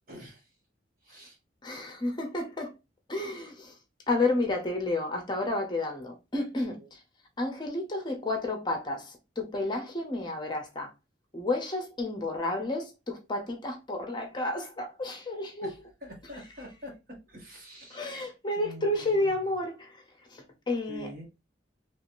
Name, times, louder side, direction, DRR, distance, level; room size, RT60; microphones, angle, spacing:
voice 1, 0.1-0.5 1.0-1.4 6.7-6.9 15.6-15.7 16.0-16.9 17.3-18.3 18.5-19.3 20.9-21.3, left 1 dB, 50° right, 1.2 m, -45 dB
voice 2, 1.6-2.7 3.1-3.7 4.1-7.0 7.4-10.9 11.3-15.7 17.9-20.0 20.3-21.1, left 2 dB, 25° left, 0.7 m, -31 dB
3.0 x 2.7 x 2.9 m
head